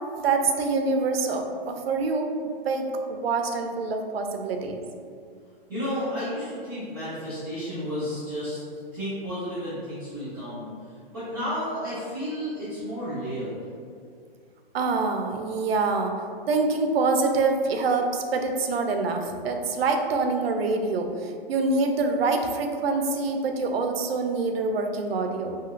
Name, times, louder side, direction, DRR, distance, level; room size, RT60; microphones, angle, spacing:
voice 1, 0.2-2.3 2.6-4.8 14.7-16.2 16.5-25.6, right 3 dB, 80° right, 4 dB, 0.5 m, -25 dB
voice 2, 5.7-8.6 8.9-13.6, equal, 20° right, -11 dB, 0.6 m, -32 dB
3.1 x 2.7 x 2.4 m, 2.2 s
hypercardioid pair, 180°, 30 cm